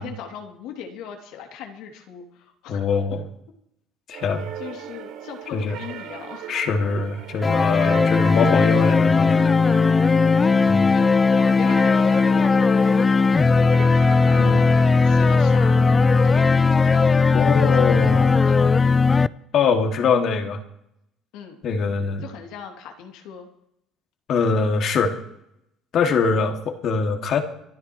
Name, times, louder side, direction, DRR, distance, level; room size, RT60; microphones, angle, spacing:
voice 1, 0.0-2.9 4.6-6.6 10.4-19.1 21.3-21.6 22.2-23.5, left 7 dB, 80° left, 2 dB, 2.8 m, -40 dB
voice 2, 2.7-3.2 4.1-4.5 5.5-5.8 6.5-9.5 10.7-10.9 14.4-14.6 17.3-18.3 19.5-20.6 21.6-22.2 24.3-25.1 25.9-27.4, left 5 dB, 55° left, 4 dB, 2.2 m, -23 dB
sound 1, 4.1-16.4, right 9 dB, 75° right, 4.4 m, -39 dB
sound 2, 7.4-19.3, left 4 dB, 25° left, 0.4 m, -17 dB
26.0 x 12.0 x 3.2 m, 0.77 s
cardioid pair, 100°, 0 cm